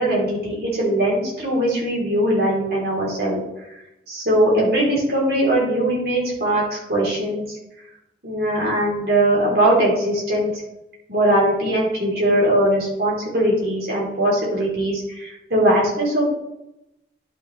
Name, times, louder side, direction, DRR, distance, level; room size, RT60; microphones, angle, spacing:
voice 1, 0.0-3.4 4.1-7.6 8.2-10.6 11.1-16.2, right 1 dB, 65° right, -4 dB, 3.1 m, -20 dB
11.0 x 5.9 x 3.1 m, 0.90 s
head